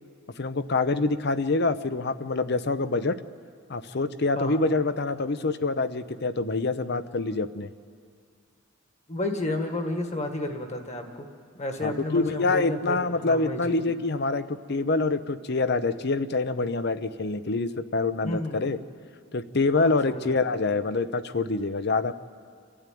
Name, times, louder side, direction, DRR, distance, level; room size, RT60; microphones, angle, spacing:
voice 1, 0.4-3.2 3.7-7.7 11.8-18.8 19.3-22.1, left 3 dB, 55° left, 13 dB, 0.7 m, -26 dB
voice 2, 9.1-11.3 11.6-13.8 18.2-18.7 19.7-20.5, left 1 dB, 35° left, 5 dB, 1.8 m, -32 dB
28.5 x 12.5 x 9.4 m, 2.1 s
head